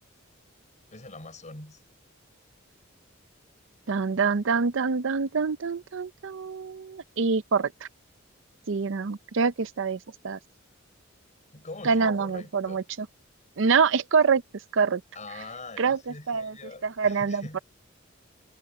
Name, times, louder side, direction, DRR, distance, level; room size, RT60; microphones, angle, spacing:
voice 1, 0.9-1.8 11.5-12.8 15.1-17.6, left 2 dB, 40° left, 5.4 m, -43 dB
voice 2, 3.9-7.7 8.7-10.0 10.2-10.4 11.8-12.8 13.6-14.4 14.7-15.0 15.8-16.0 16.3-16.5 16.8-17.6, right 5 dB, 70° right, 0.6 m, -25 dB
head